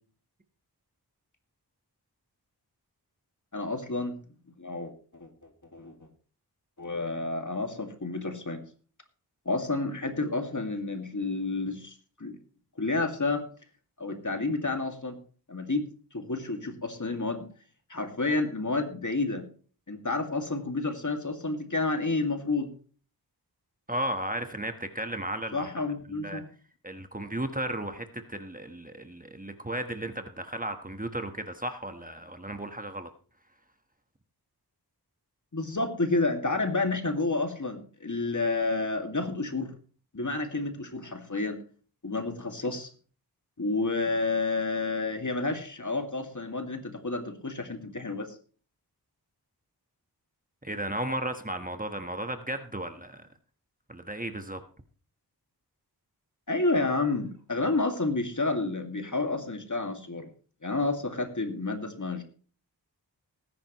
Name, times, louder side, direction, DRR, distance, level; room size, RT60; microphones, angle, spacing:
voice 1, 3.5-4.2 4.6-5.3 5.7-5.9 6.8-8.6 9.5-12.4 12.8-13.5 14.0-15.2 15.5-17.5 17.9-19.5 19.9-22.7 25.5-26.5 35.5-39.7 40.1-41.6 42.0-42.9 43.6-48.4 56.5-60.3 60.6-62.2, left 3 dB, 50° left, 5 dB, 2.2 m, -30 dB
voice 2, 23.9-25.7 26.1-26.4 26.8-33.1 50.6-53.3 53.9-54.6, right 1 dB, 20° right, 7 dB, 1.3 m, -34 dB
19.0 x 10.5 x 3.1 m, 0.40 s
wide cardioid pair, 65°, 40 cm